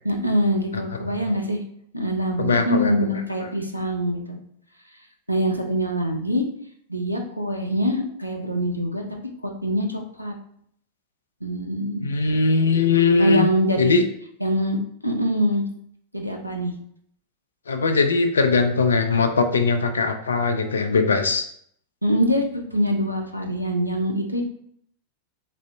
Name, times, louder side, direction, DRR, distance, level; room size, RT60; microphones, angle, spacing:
voice 1, 0.0-1.6 1.9-4.4 5.3-6.4 6.9-9.0 9.4-10.3 11.4-12.1 13.2-14.0 14.4-15.6 16.1-16.7 22.0-22.4 22.7-24.4, equal, 90° right, 2 dB, 0.6 m, -24 dB
voice 2, 2.4-2.9 12.0-13.5 13.8-14.0 17.7-21.5, left 4 dB, 70° left, 7 dB, 0.4 m, -20 dB
4.2 x 3.8 x 2.2 m, 0.67 s
figure-of-eight pair, 90°, 0 cm